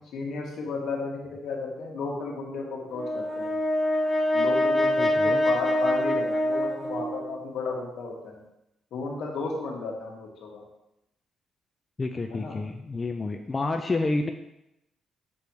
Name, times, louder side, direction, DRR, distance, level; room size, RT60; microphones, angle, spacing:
voice 1, 0.1-3.6 4.3-8.4 8.9-10.6 12.3-12.6, left 3 dB, 70° left, -1 dB, 1.7 m, -34 dB
Brass instrument, 2.9-7.4, left 1 dB, 10° left, 1.2 m, -25 dB
voice 2, 5.0-5.4 12.0-14.3, left 3 dB, 30° left, 5 dB, 0.4 m, -29 dB
6.8 x 3.4 x 4.6 m, 0.87 s
cardioid pair, 90°, 0 cm